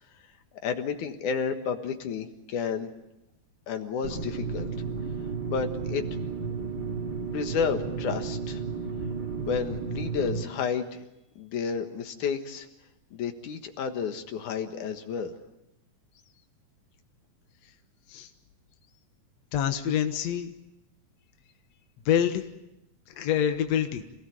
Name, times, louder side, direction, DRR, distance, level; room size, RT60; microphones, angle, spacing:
voice 1, 0.6-2.9 3.7-4.7 5.5-6.0 7.3-8.6 9.5-11.0 11.4-12.7 13.1-15.3, left 6 dB, 80° left, 6 dB, 3.0 m, -31 dB
sound 1, 4.0-10.4, right 5 dB, 35° right, 3.0 m, -33 dB
voice 2, 19.5-20.5 22.1-22.4 23.2-24.0, left 9 dB, 65° left, 6 dB, 2.5 m, -26 dB
28.0 x 17.5 x 9.5 m, 0.90 s
omnidirectional pair, 3.4 m